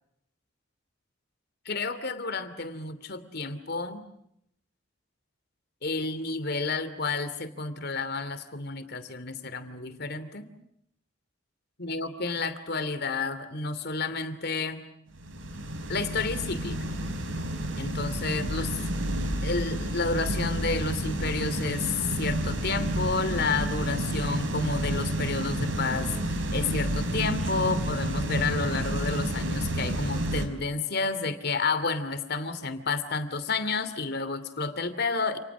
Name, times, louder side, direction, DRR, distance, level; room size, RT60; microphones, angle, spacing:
voice 1, 1.6-4.0 5.8-10.5 11.8-14.8 15.9-16.8 17.8-18.8 19.4-35.4, left 4 dB, 55° left, 11 dB, 2.8 m, -30 dB
sound 1, 15.2-30.5, right 1 dB, 85° right, 4.4 m, -30 dB
29.5 x 29.0 x 6.1 m, 0.76 s
head